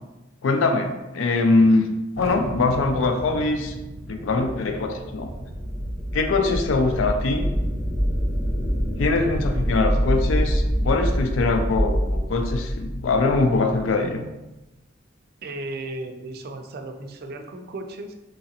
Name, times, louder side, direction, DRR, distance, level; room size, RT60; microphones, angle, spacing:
voice 1, 0.4-1.9 2.2-3.7 4.1-5.3 6.1-7.5 9.0-14.3, left 3 dB, 75° left, 5 dB, 0.4 m, -22 dB
Thunder, 2.1-7.3, right 1 dB, 85° right, 0.7 m, -37 dB
sound 1, 4.0-13.9, equal, 50° left, 0.9 m, -26 dB
voice 2, 15.4-18.1, right 2 dB, 50° right, 5 dB, 0.4 m, -35 dB
3.7 x 3.0 x 2.8 m, 1.0 s
head